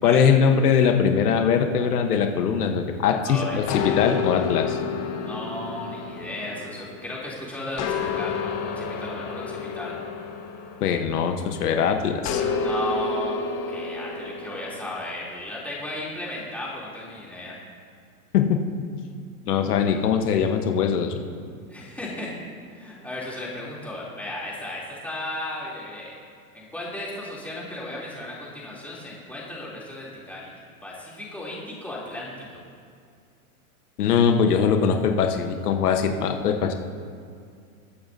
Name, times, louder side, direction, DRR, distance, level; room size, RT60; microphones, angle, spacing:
voice 1, 0.0-4.8 10.8-12.4 18.3-18.6 19.5-21.1 34.0-36.7, left 7 dB, 85° left, 5 dB, 1.2 m, -21 dB
voice 2, 3.3-3.6 5.2-8.4 8.7-9.9 12.6-17.6 21.7-22.3 22.7-26.1 26.5-30.5 30.8-32.6, left 1 dB, 5° left, -6 dB, 3.0 m, -35 dB
sound 1, 3.7-7.2 7.8-11.5 12.3-14.9, left 5 dB, 35° left, 1.5 m, -30 dB
21.5 x 9.2 x 2.7 m, 2.3 s
hypercardioid pair, 130°, 45 cm